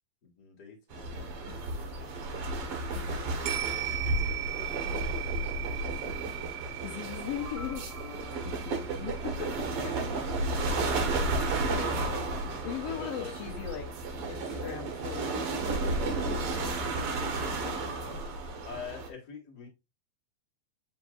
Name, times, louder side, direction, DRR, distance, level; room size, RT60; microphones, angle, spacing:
voice 1, 0.2-1.3 3.0-3.3 3.7-5.1 5.8-6.8 10.0-10.5 11.7-12.5 12.9-13.3 18.6-19.7, left 6 dB, 35° left, 0 dB, 2.0 m, -45 dB
sound 1, 0.9-19.1, right 2 dB, 60° right, 1.6 m, -33 dB
voice 2, 1.5-1.8 2.9-3.3 6.8-7.8 8.4-9.5 9.8-9.9 10.4-10.8 12.6-13.9 14.3-18.2, left 10 dB, 85° left, 2 dB, 1.4 m, -40 dB
sound 2, 3.5-12.0 12.4-12.5, right 14 dB, 75° right, 2.2 m, -39 dB
sound 3, 6.8-9.8, left 2 dB, 25° right, 2.3 m, -49 dB
7.3 x 5.3 x 2.4 m, 0.23 s
omnidirectional pair, 4.1 m